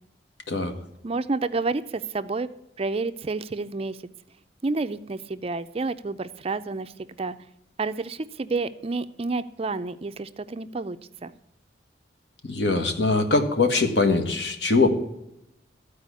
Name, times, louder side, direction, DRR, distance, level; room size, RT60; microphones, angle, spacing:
voice 1, 1.0-2.5 2.8-4.0 4.6-6.9 7.2-7.4 7.8-11.0 11.2-11.3, right 3 dB, 30° right, 12 dB, 0.4 m, -29 dB
voice 2, 12.4-14.9, left 3 dB, 65° left, 6 dB, 1.5 m, -22 dB
14.0 x 4.9 x 8.2 m, 0.84 s
head